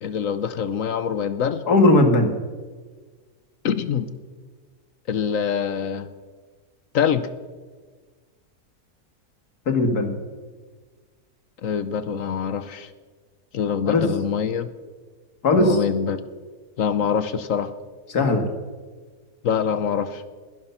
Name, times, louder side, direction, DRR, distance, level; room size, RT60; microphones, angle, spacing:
voice 1, 0.0-1.7 3.6-4.1 5.1-6.1 6.9-7.3 11.6-12.9 13.5-14.7 15.6-16.2 16.8-17.7 19.4-20.2, left 7 dB, 60° left, 13 dB, 1.2 m, -24 dB
voice 2, 1.7-2.3 9.7-10.1 13.9-14.0 15.4-15.8 18.1-18.5, left 2 dB, 80° left, 6 dB, 2.4 m, -18 dB
20.5 x 11.5 x 5.8 m, 1.4 s
omnidirectional pair, 1.7 m